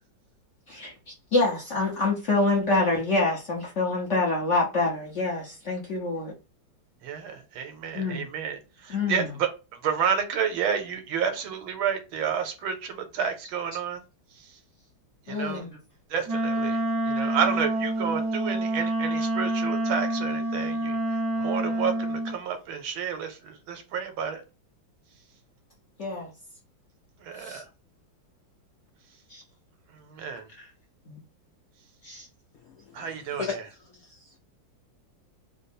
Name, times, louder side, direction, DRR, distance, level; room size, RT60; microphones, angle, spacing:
voice 1, 1.3-6.3 7.9-8.3 8.9-9.3 15.3-15.7 26.0-26.3 27.4-27.6 29.3-29.4 30.6-30.7 31.1-31.2 32.0-32.3, left 3 dB, 50° left, 0.9 m, -26 dB
voice 2, 7.0-14.0 14.4-14.6 15.3-15.6 16.1-24.4 27.2-27.6 29.9-30.5 32.9-33.6, right 7 dB, 75° right, 1.6 m, -30 dB
Wind instrument woodwind instrument, 16.3-22.4, right 1 dB, 20° right, 0.6 m, -27 dB
voice 3, 32.7-33.1 33.4-33.6 33.9-34.4, left 5 dB, 85° left, 0.7 m, -35 dB
3.6 x 2.0 x 4.1 m
omnidirectional pair, 2.2 m